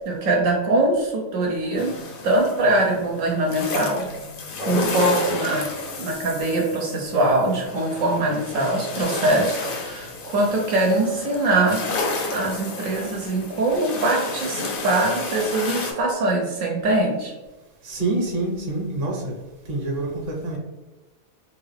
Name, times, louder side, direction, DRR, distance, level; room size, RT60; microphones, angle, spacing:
voice 1, 0.1-1.9 2.2-4.1 4.6-5.7 6.0-11.8 12.3-17.3, right 2 dB, 75° right, -1 dB, 1.0 m, -22 dB
sound 1, 1.8-15.9, left 3 dB, 60° left, 0.6 m, -31 dB
voice 2, 17.8-19.3 19.7-20.6, right 2 dB, 50° right, -1 dB, 0.9 m, -26 dB
3.2 x 2.3 x 3.2 m, 1.1 s
omnidirectional pair, 1.4 m